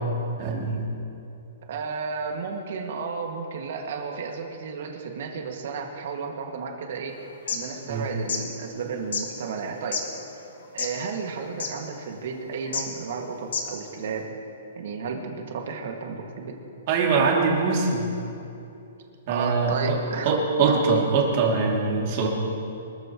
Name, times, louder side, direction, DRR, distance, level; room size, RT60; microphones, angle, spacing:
voice 1, 0.4-0.9 7.9-8.1 16.9-18.1 19.3-20.0 20.2-22.3, right 4 dB, 35° right, -2 dB, 2.7 m, -23 dB
voice 2, 1.7-7.2 7.5-10.0 10.7-14.3 14.8-16.6 19.3-20.3 20.7-20.8, right 5 dB, 55° right, 2 dB, 2.0 m, -33 dB
sound 1, 7.3-7.6 8.1-8.4 9.1-9.2 9.9-10.0 10.6-11.0 11.3-11.4 11.6-11.7 12.7-12.9 13.4-13.8, left 5 dB, 80° left, 2.2 m, -28 dB
24.5 x 14.0 x 3.1 m, 2.7 s
hypercardioid pair, 170°, 0 cm